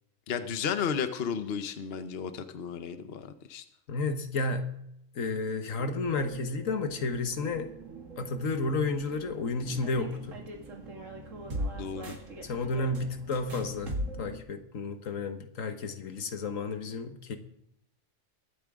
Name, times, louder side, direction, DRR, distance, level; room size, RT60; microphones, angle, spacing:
voice 1, 0.3-3.6 11.7-12.2, left 7 dB, 55° left, 9 dB, 1.0 m, -33 dB
voice 2, 3.9-4.6 5.2-7.7 8.2-10.4 12.4-17.4, left 3 dB, 85° left, 7 dB, 1.6 m, -32 dB
sound 1, 5.8-14.4, right 1 dB, 75° right, 2.4 m, -41 dB
23.0 x 8.8 x 3.6 m, 0.79 s
omnidirectional pair, 1.3 m